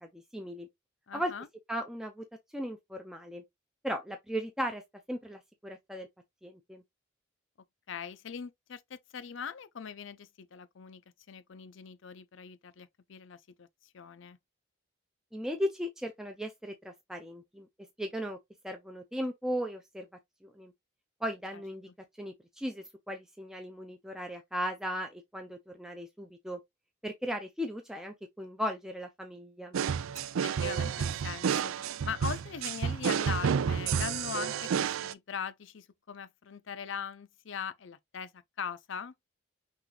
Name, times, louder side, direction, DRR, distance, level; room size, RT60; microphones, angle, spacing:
voice 1, 0.0-0.7 1.1-1.3 1.7-2.2 2.5-3.4 3.8-4.8 5.1-6.1 6.4-6.8 15.3-17.7 18.0-18.4 18.6-20.1 20.4-20.7 21.2-21.9 22.2-26.6 27.0-29.7, equal, 5° right, 0.5 m, -37 dB
voice 2, 1.1-1.5 7.9-11.0 11.3-14.4 30.2-31.8 32.0-39.1, left 7 dB, 65° left, 0.5 m, -41 dB
sound 1, 29.7-35.1, right 7 dB, 85° right, 0.4 m, -30 dB
5.9 x 2.5 x 3.2 m
head